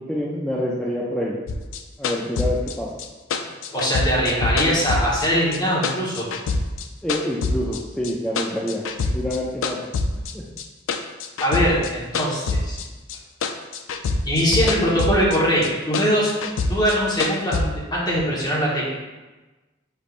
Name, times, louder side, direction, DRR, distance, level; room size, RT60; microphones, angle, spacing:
voice 1, 0.0-1.3 2.0-2.9 7.0-8.8 9.1-9.9 10.3-10.4, equal, 5° left, -6 dB, 0.3 m, -27 dB
sound 1, 1.5-5.6 5.8-7.8 8.0-9.4 9.6-13.2 13.4-15.4 15.6-17.6, left 3 dB, 85° left, 0.4 m, -25 dB
voice 2, 3.7-6.3 11.4-12.8 14.2-16.3 16.7-18.9, equal, 20° left, -6 dB, 1.1 m, -21 dB
6.4 x 3.3 x 2.5 m, 1.2 s
head